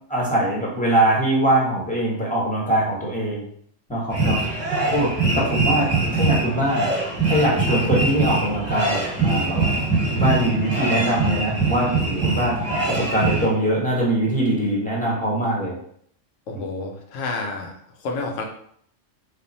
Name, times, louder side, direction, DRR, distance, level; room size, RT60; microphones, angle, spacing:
voice 1, 0.1-3.4 3.9-4.4 4.9-6.9 7.3-9.7 10.1-12.6 12.9-15.7 16.5-16.6, right 1 dB, 5° left, -4 dB, 0.9 m, -22 dB
sound 1, 4.1-13.5, right 3 dB, 10° right, 1.2 m, -23 dB
voice 2, 16.5-17.8 18.0-18.4, left 3 dB, 85° left, 1 dB, 1.1 m, -30 dB
3.3 x 2.2 x 4.0 m, 0.65 s
omnidirectional pair, 1.3 m